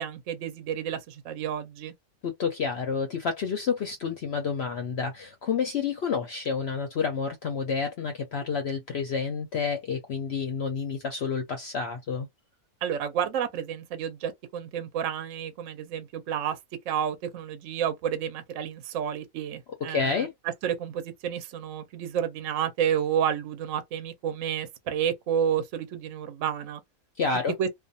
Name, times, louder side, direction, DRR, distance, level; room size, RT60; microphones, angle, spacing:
voice 1, 0.0-1.9 12.8-16.6 16.9-20.3 20.6-26.8 27.6-27.7, right 9 dB, 65° right, 0.9 m, -30 dB
voice 2, 2.2-12.3 19.9-20.3 27.2-27.6, left 5 dB, 60° left, 0.7 m, -29 dB
2.5 x 2.3 x 2.6 m
omnidirectional pair, 1.5 m